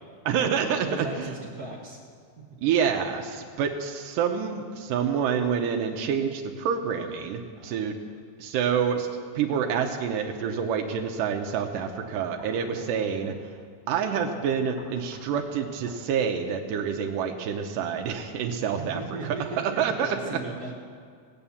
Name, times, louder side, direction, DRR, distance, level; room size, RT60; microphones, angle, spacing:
voice 1, 0.3-1.3 2.6-8.0 8.4-9.1 9.4-13.3 13.9-19.4 19.8-20.2, right 7 dB, 90° right, 4 dB, 2.4 m, -27 dB
voice 2, 0.8-2.0 2.4-2.5 7.5-8.0 18.6-20.7, right 3 dB, 65° right, -2 dB, 0.9 m, -37 dB
sound 1, 10.8-10.9 11.5-11.6 11.9-13.0 13.2-13.4 14.2-15.3 15.9-16.0, equal, 35° left, 4.3 m, -48 dB
17.5 x 9.0 x 7.1 m, 2.2 s
omnidirectional pair, 3.7 m